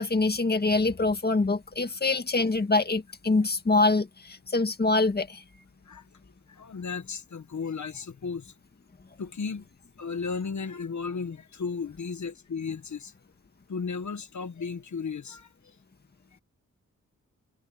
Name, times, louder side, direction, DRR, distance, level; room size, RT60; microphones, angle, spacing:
voice 1, 0.0-5.4, left 3 dB, 30° left, 1.8 m, -25 dB
voice 2, 6.6-8.5 9.2-9.6 10.0-13.1 13.7-15.5, left 5 dB, 70° left, 1.6 m, -34 dB
wide cardioid pair, 140°, 30 cm